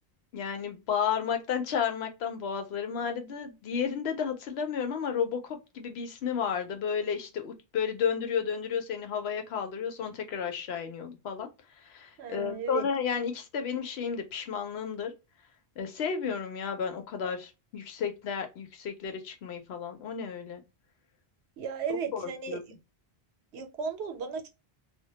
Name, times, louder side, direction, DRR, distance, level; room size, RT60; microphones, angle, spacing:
voice 1, 0.3-11.5 11.8-15.1 15.8-20.6 22.1-22.6, left 7 dB, 75° left, 0.9 m, -32 dB
voice 2, 12.2-12.9 21.6-22.8 23.5-24.5, right 6 dB, 80° right, 0.9 m, -35 dB
2.2 x 2.1 x 2.8 m
omnidirectional pair, 1.1 m